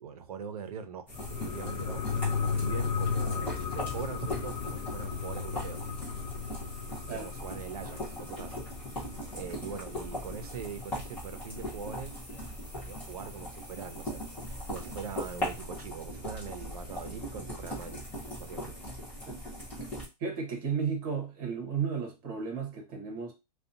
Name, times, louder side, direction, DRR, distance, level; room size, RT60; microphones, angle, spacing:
voice 1, 0.0-2.1 2.6-5.9 7.0-8.6 9.3-12.2 12.7-14.2 14.7-18.0 18.4-18.8, right 6 dB, 65° right, 0.5 m, -42 dB
sound 1, 1.1-10.3 10.6-10.7, left 6 dB, 65° left, 0.5 m, -35 dB
sound 2, 1.1-20.1, equal, 10° left, 0.6 m, -39 dB
voice 2, 20.2-23.3, right 6 dB, 30° right, 0.9 m, -33 dB
2.7 x 2.2 x 2.5 m
hypercardioid pair, 180°, 21 cm